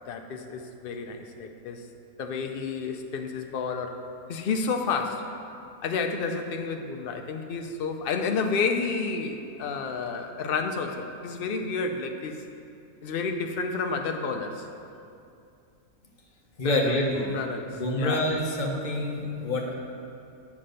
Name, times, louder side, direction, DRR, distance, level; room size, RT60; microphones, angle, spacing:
voice 1, 0.1-1.9 2.2-5.3 5.8-12.4 13.0-14.7 16.6-18.2, left 4 dB, 55° left, 5 dB, 0.6 m, -30 dB
voice 2, 16.6-17.3 17.7-19.7, left 1 dB, 35° left, 0 dB, 1.0 m, -27 dB
7.5 x 6.0 x 6.5 m, 2.6 s
omnidirectional pair, 1.6 m